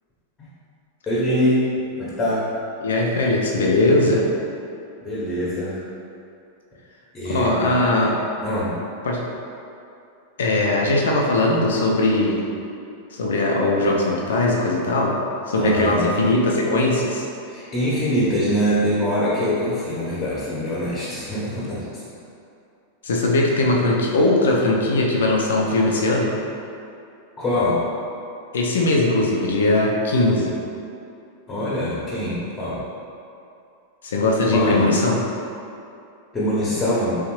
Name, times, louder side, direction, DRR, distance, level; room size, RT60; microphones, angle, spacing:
voice 1, 1.1-1.6 2.0-2.5 5.0-5.8 7.1-7.7 8.4-8.7 10.7-10.9 15.6-16.1 17.5-22.0 27.4-27.9 31.5-32.8 34.5-34.9 36.3-37.2, equal, 15° left, -8 dB, 0.9 m, -23 dB
voice 2, 2.8-4.3 7.2-8.2 9.0-9.3 10.4-12.5 13.1-15.2 15.5-17.2 23.0-26.3 28.5-30.6 34.0-35.2, left 2 dB, 65° left, -2 dB, 0.4 m, -20 dB
3.5 x 3.4 x 3.0 m, 2.6 s
figure-of-eight pair, 90°, 0 cm